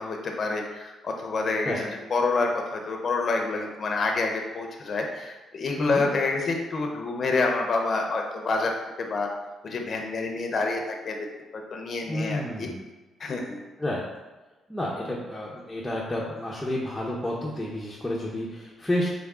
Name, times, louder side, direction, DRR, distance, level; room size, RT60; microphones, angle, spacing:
voice 1, 0.0-8.7 9.0-9.3 9.6-11.3 11.5-12.7 13.2-13.6, left 3 dB, 45° left, 2 dB, 0.7 m, -28 dB
voice 2, 12.1-12.8 13.8-14.0 14.7-19.1, left 1 dB, 10° left, -5 dB, 0.7 m, -30 dB
3.6 x 3.6 x 3.6 m, 1.2 s
cardioid pair, 90°, 0 cm